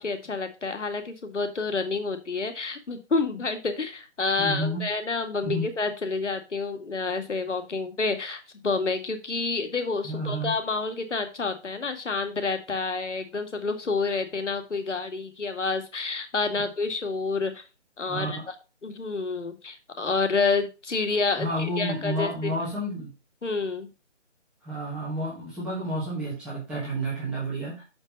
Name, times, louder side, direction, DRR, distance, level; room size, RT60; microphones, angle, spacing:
voice 1, 0.0-17.6 18.0-18.4 18.8-22.5 23.4-23.9, left 4 dB, 70° left, 6 dB, 2.1 m, -29 dB
voice 2, 4.4-4.8 5.4-5.7 10.0-10.5 18.1-18.5 21.4-23.1 24.6-27.8, right 1 dB, ahead, -8 dB, 1.3 m, -30 dB
6.7 x 5.4 x 5.4 m, 0.29 s
figure-of-eight pair, 170°, 37 cm